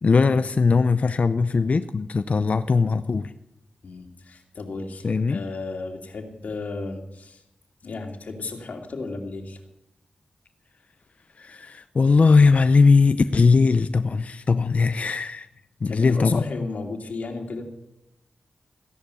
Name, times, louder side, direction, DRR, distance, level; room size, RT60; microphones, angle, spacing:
voice 1, 0.0-3.3 5.0-5.4 11.4-15.5 15.8-16.4, left 4 dB, 55° left, 10 dB, 0.6 m, -19 dB
voice 2, 2.3-2.7 3.8-7.4 7.8-9.6 15.8-17.6, left 3 dB, 75° left, 2 dB, 2.7 m, -34 dB
16.0 x 11.0 x 6.9 m, 0.88 s
cardioid pair, 55°, 3 cm